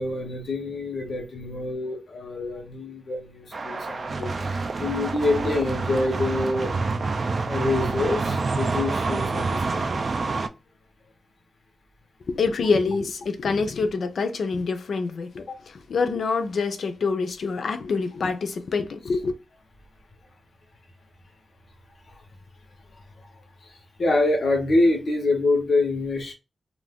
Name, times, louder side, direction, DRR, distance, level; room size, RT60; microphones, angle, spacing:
voice 1, 0.0-6.7 7.5-10.1 23.7-26.3, left 2 dB, 60° left, 0.9 m, -26 dB
sound 1, 3.5-10.5, right 3 dB, 45° right, 0.3 m, -27 dB
voice 2, 12.3-19.3, left 4 dB, 80° left, 0.4 m, -26 dB
2.4 x 2.4 x 3.5 m
wide cardioid pair, 155°, 0 cm